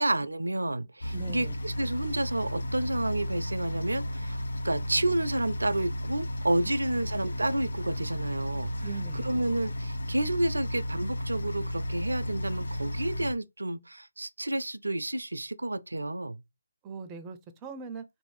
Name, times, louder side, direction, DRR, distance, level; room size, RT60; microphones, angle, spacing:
voice 1, 0.0-8.7 9.1-16.4, right 1 dB, 85° right, 0.4 m, -30 dB
sound 1, 1.0-13.3, left 1 dB, 75° left, 0.4 m, -33 dB
voice 2, 1.1-1.5 8.8-9.4 16.8-18.0, right 5 dB, 20° right, 0.4 m, -40 dB
3.0 x 2.6 x 3.1 m
figure-of-eight pair, 150°, 0 cm